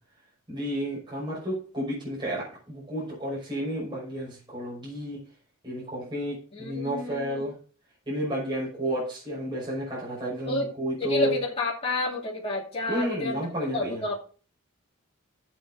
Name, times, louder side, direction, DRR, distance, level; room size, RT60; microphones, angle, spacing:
voice 1, 0.5-5.2 5.6-7.5 8.1-11.4 12.9-14.0, equal, 20° right, -6 dB, 5.8 m, -31 dB
voice 2, 6.5-7.4 10.5-10.7 11.0-14.2, left 1 dB, 25° left, -6 dB, 2.6 m, -30 dB
17.5 x 7.6 x 2.7 m, 0.39 s
head